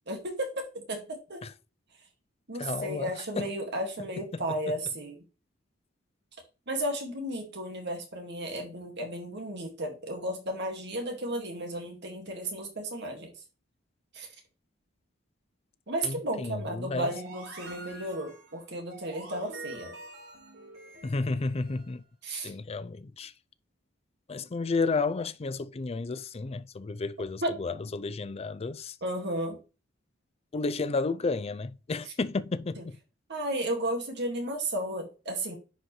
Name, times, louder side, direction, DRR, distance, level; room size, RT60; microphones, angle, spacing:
voice 1, 0.1-1.4 2.5-5.2 6.7-13.3 14.1-14.3 15.9-19.9 22.2-22.5 27.4-27.5 29.0-29.6 32.8-32.9 33.3-35.5, right 1 dB, 60° right, 2.0 m, -34 dB
voice 2, 2.6-3.5 4.3-4.7 16.0-17.1 21.0-22.0 22.3-23.3 24.3-29.0 30.5-33.0, left 3 dB, 30° left, 0.4 m, -32 dB
sound 1, 17.0-21.9, right 2 dB, 75° right, 4.0 m, -46 dB
10.0 x 5.0 x 3.2 m
head